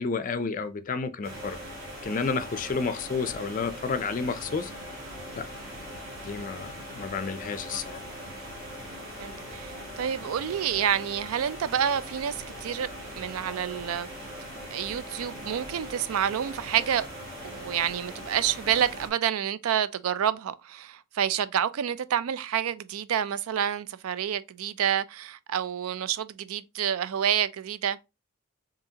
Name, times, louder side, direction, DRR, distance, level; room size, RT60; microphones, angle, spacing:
voice 1, 0.0-1.6 2.0-4.7 5.3-5.5 6.2-8.0, left 4 dB, 40° left, 0.4 m, -31 dB
sound 1, 1.2-19.1, equal, 45° right, 1.6 m, -41 dB
voice 2, 9.2-14.1 14.7-17.1 17.4-28.0, right 9 dB, 85° right, 0.4 m, -28 dB
4.9 x 2.9 x 2.8 m
head